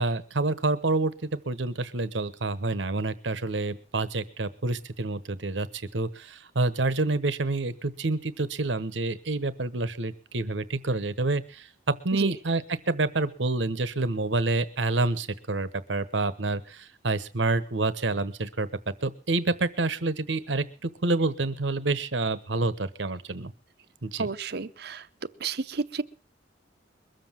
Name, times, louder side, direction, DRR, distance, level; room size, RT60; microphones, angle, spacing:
voice 1, 0.0-11.7 12.0-18.7 19.0-23.5 24.0-24.3, right 2 dB, 80° right, 15 dB, 1.1 m, -28 dB
voice 2, 24.2-25.1 25.4-26.0, right 4 dB, 60° right, 13 dB, 0.8 m, -31 dB
22.0 x 7.8 x 7.4 m, 0.39 s
head